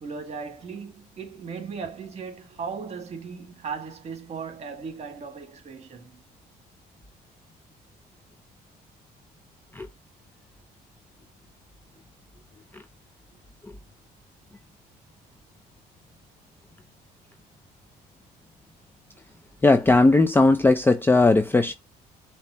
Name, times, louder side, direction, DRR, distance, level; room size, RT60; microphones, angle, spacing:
voice 1, 0.0-6.2, right 5 dB, 40° right, 2.0 m, -37 dB
voice 2, 19.6-21.7, left 2 dB, 10° left, 0.5 m, -18 dB
5.3 x 2.8 x 3.0 m
cardioid pair, 110°, 17 cm